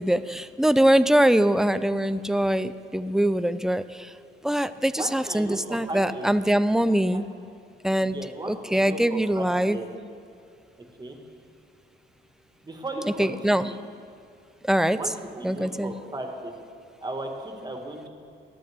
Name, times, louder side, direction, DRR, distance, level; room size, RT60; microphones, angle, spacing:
voice 1, 0.0-4.1 4.4-7.3 7.8-8.2 8.5-9.8 13.2-13.7 14.6-15.0 15.4-15.9, right 1 dB, ahead, 13 dB, 0.4 m, -23 dB
voice 2, 5.0-6.3 7.1-7.2 8.0-9.9 11.0-11.2 12.6-13.8 14.9-16.5 17.0-18.1, right 2 dB, 20° right, 2 dB, 1.7 m, -36 dB
21.0 x 7.7 x 3.6 m, 2.4 s
cardioid pair, 90°, 20 cm